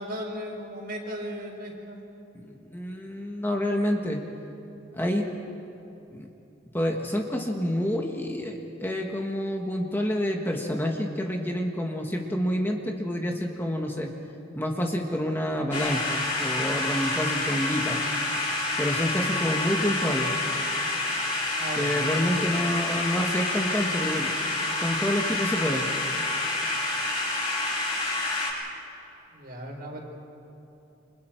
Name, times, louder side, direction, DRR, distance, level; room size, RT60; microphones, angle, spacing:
voice 1, 0.0-2.0 21.6-21.9 29.3-30.1, equal, 50° right, 1 dB, 4.3 m, -36 dB
voice 2, 2.3-4.2 4.9-5.3 6.1-6.3 6.7-14.1 14.5-18.0 18.8-20.3 21.8-24.3 24.8-25.9, equal, 10° left, 1 dB, 1.4 m, -28 dB
sound 1, 15.7-28.5, left 2 dB, 30° left, 5.7 m, -28 dB
29.5 x 26.5 x 4.5 m, 3.0 s
head